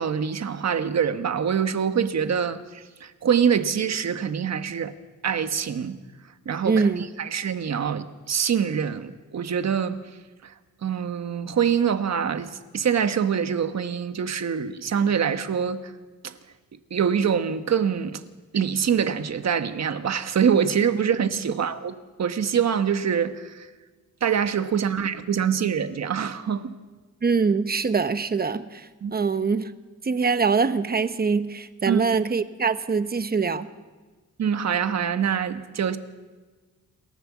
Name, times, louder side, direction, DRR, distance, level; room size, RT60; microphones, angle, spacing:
voice 1, 0.0-4.9 5.2-6.0 6.4-10.0 10.4-10.5 10.8-15.9 16.2-16.3 16.9-18.2 18.5-23.7 24.2-26.7 29.0-29.1 31.9-32.0 34.4-36.0, right 7 dB, 55° right, 1.3 m, -25 dB
voice 2, 6.6-7.0 27.2-28.9 29.1-29.7 30.0-33.7, right 5 dB, 30° right, 1.0 m, -23 dB
27.5 x 14.0 x 7.4 m
wide cardioid pair, 135°, 31 cm